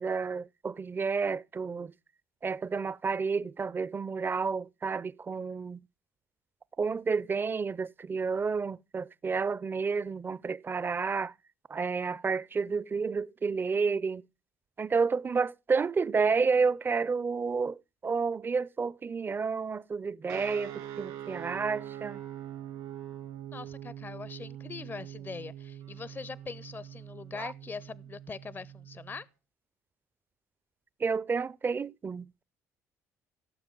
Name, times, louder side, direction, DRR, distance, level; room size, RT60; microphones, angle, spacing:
voice 1, 0.0-1.9 2.4-5.8 6.8-11.3 11.7-14.2 14.8-22.2 27.3-27.5 31.0-32.4, right 5 dB, 25° right, 0.4 m, -30 dB
sound 1, 20.3-29.2, right 11 dB, 85° right, 2.5 m, -43 dB
voice 2, 23.5-29.2, left 4 dB, 25° left, 0.5 m, -42 dB
17.5 x 7.1 x 3.8 m
hypercardioid pair, 65°, 8 cm